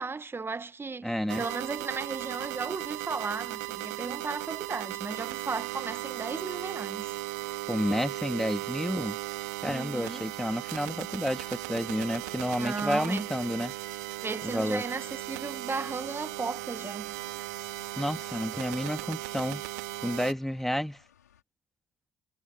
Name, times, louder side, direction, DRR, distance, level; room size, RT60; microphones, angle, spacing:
voice 1, 0.0-7.2 9.6-10.3 12.6-13.3 14.2-17.2, right 4 dB, 25° right, 1.5 m, -35 dB
voice 2, 1.0-1.4 7.7-9.2 9.6-13.7 14.4-14.8 18.0-19.6 20.0-21.0, equal, 5° left, 2.5 m, -30 dB
sound 1, 1.3-20.3, right 20 dB, 75° right, 3.1 m, -37 dB
sound 2, 10.1-21.4, left 9 dB, 85° left, 5.2 m, -59 dB
figure-of-eight pair, 50°, 9 cm